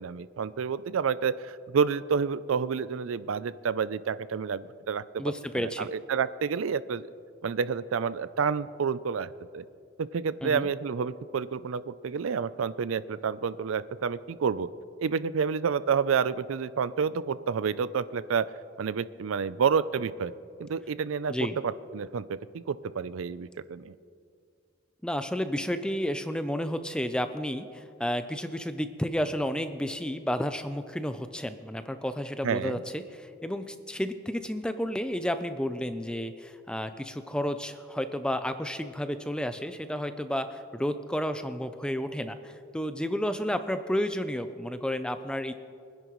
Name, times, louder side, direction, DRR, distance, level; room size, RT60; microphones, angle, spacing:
voice 1, 0.0-5.2 5.5-7.1 7.4-9.3 9.5-9.6 10.0-14.7 15.0-18.5 18.8-20.3 20.6-21.4 21.6-24.0 32.4-32.8, right 6 dB, 90° right, 16 dB, 0.4 m, -29 dB
voice 2, 5.2-5.9 10.4-10.7 21.3-21.6 25.0-45.5, equal, 5° left, 10 dB, 0.4 m, -31 dB
24.0 x 10.5 x 3.1 m, 2.3 s
head